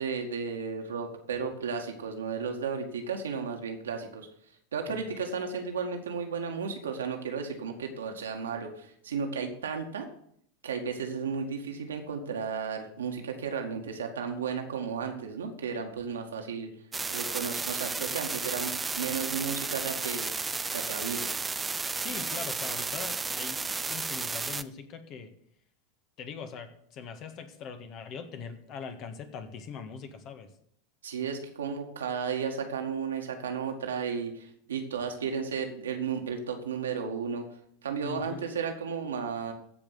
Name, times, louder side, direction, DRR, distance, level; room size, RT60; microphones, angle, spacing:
voice 1, 0.0-4.3 4.7-10.1 10.6-16.7 17.1-20.3 20.7-21.3 31.0-37.5 37.8-39.5, right 6 dB, 75° right, 3 dB, 1.9 m, -34 dB
sound 1, 16.9-24.6, right 4 dB, 15° right, 0.6 m, -33 dB
voice 2, 21.9-23.6 23.9-25.3 26.2-30.5 38.0-38.4, left 6 dB, 45° left, 8 dB, 1.7 m, -41 dB
15.0 x 5.2 x 7.9 m, 0.68 s
figure-of-eight pair, 85°, 0 cm